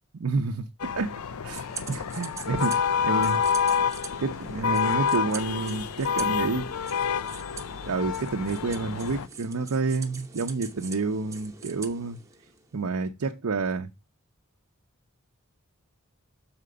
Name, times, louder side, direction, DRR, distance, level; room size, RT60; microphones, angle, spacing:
voice 1, 0.2-3.4 4.2-6.7 7.8-12.2 12.7-13.9, right 3 dB, 75° right, 0.6 m, -29 dB
sound 1, 0.8-9.3, left 6 dB, 80° left, 0.5 m, -28 dB
sound 2, 1.5-12.7, right 5 dB, 15° right, 0.6 m, -43 dB
6.7 x 4.4 x 4.9 m
head